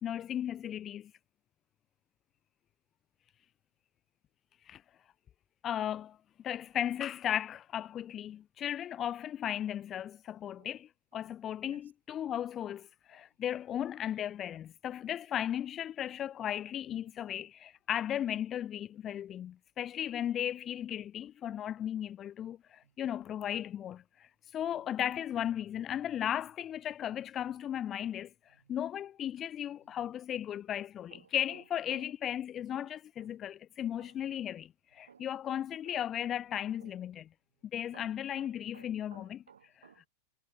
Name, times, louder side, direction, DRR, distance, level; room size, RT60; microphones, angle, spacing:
voice 1, 0.0-1.1 4.7-4.8 5.6-6.2 6.4-37.3 37.7-39.4, left 10 dB, 30° left, 0.5 m, -36 dB
voice 2, 31.1-31.6 31.9-32.1 32.7-33.3 34.0-34.2 35.1-35.6 35.8-36.0 36.8-37.0 37.9-40.1, right 7 dB, 70° right, 2.2 m, -58 dB
figure-of-eight pair, 90°, 0 cm